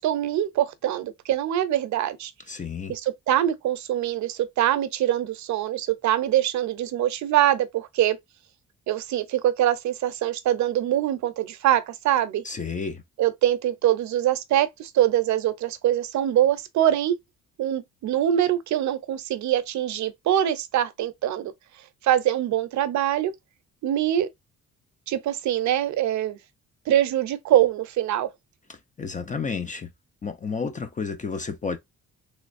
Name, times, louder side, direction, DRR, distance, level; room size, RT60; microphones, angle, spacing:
voice 1, 0.0-2.3 2.9-8.2 8.9-12.4 13.2-17.2 17.6-21.5 22.0-23.3 23.8-24.3 25.1-26.4 26.9-28.3, right 12 dB, 70° right, 0.6 m, -23 dB
voice 2, 2.5-2.9 12.5-13.0 29.0-29.9 30.2-31.8, left 5 dB, 25° left, 0.5 m, -31 dB
3.1 x 3.1 x 2.5 m
cardioid pair, 90°, 30 cm